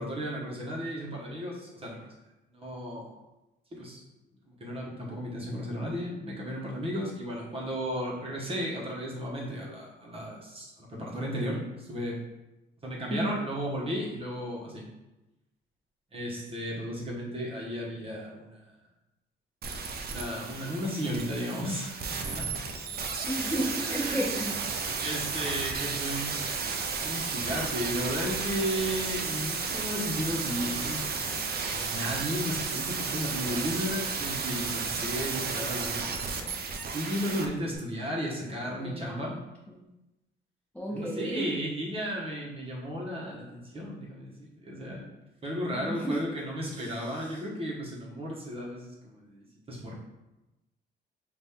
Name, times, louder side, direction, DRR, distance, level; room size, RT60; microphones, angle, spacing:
voice 1, 0.0-2.1 2.5-3.2 3.7-4.0 4.5-12.2 12.8-14.8 16.1-18.7 20.0-22.0 22.4-22.5 23.7-24.2 25.0-26.4 27.0-39.3 40.9-45.1 45.4-50.0, equal, 30° right, -4 dB, 1.1 m, -34 dB
sound 1, 19.6-37.5 37.7-37.8, right 5 dB, 50° right, 0.6 m, -33 dB
voice 2, 23.3-24.6 38.7-39.4 39.7-39.8 40.7-41.5 45.7-46.4 46.7-47.4, right 1 dB, 5° left, -5 dB, 0.9 m, -33 dB
4.1 x 2.6 x 3.6 m, 1.0 s
cardioid pair, 90°, 20 cm